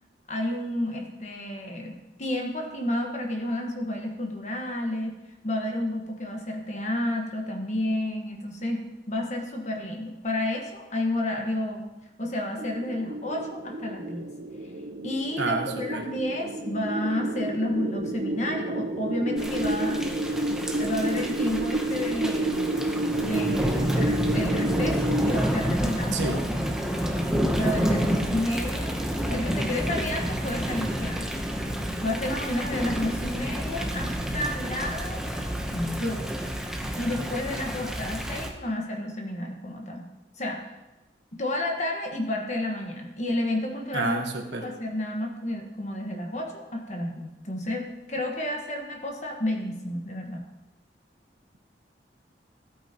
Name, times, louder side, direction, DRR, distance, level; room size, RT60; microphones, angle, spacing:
voice 1, 0.3-5.2 5.4-11.9 12.2-14.2 15.0-20.0 20.8-22.7 23.2-26.4 27.4-29.0 29.3-31.3 32.0-35.2 35.7-36.3 36.9-40.8 41.3-50.5, left 1 dB, 40° left, 2 dB, 1.4 m, -31 dB
sound 1, 12.6-25.4, right 1 dB, 50° right, 0.7 m, -30 dB
Thunder / Rain, 19.4-38.5, equal, 5° right, 0.8 m, -29 dB
voice 2, 43.9-44.6, right 3 dB, 85° right, 4 dB, 1.3 m, -28 dB
13.5 x 8.8 x 3.0 m, 1.0 s
head